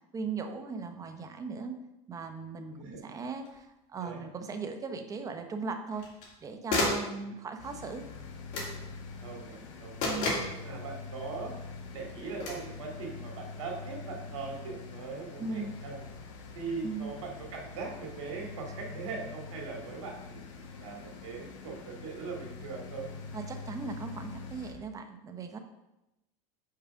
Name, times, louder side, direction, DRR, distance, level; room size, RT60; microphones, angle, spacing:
voice 1, 0.1-1.8 2.1-6.0 6.4-8.0 10.0-10.5 15.4-15.7 16.8-17.1 23.3-25.6, right 4 dB, 20° right, 6 dB, 0.7 m, -38 dB
voice 2, 2.7-3.2 4.0-4.3 7.1-7.3 9.2-10.1 10.6-11.5 11.9-16.0 16.5-23.1, right 4 dB, 80° right, 0 dB, 2.0 m, -41 dB
sound 1, 3.5-3.6 5.9-6.3 6.7-7.1 8.5-8.8 10.0-10.6 12.4-12.7, left 2 dB, 60° left, 2.4 m, -30 dB
sound 2, 7.6-24.7, left 4 dB, 85° left, 1.1 m, -44 dB
4.9 x 4.8 x 5.7 m, 0.93 s
supercardioid pair, 125°, 16 cm